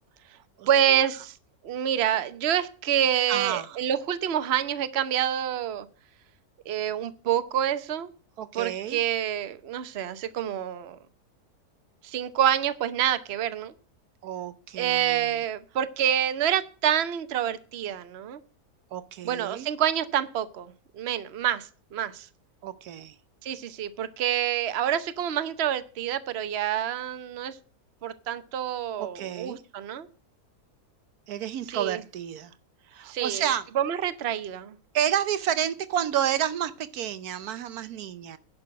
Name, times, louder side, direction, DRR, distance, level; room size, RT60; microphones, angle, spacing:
voice 1, 0.7-1.4 1.6-5.9 6.7-8.1 8.5-11.0 12.0-13.7 14.8-18.4 19.2-22.3 23.4-27.6 28.0-30.1 31.7-32.0 33.0-34.8, right 10 dB, 50° right, 12 dB, 1.0 m, -27 dB
voice 2, 3.3-3.7 8.4-9.0 14.2-15.2 18.9-19.7 22.6-23.1 29.0-29.6 31.3-32.5 32.9-33.6 34.9-38.4, right 10 dB, 75° right, 14 dB, 1.2 m, -30 dB
11.0 x 6.2 x 7.4 m, 0.38 s
omnidirectional pair, 1.6 m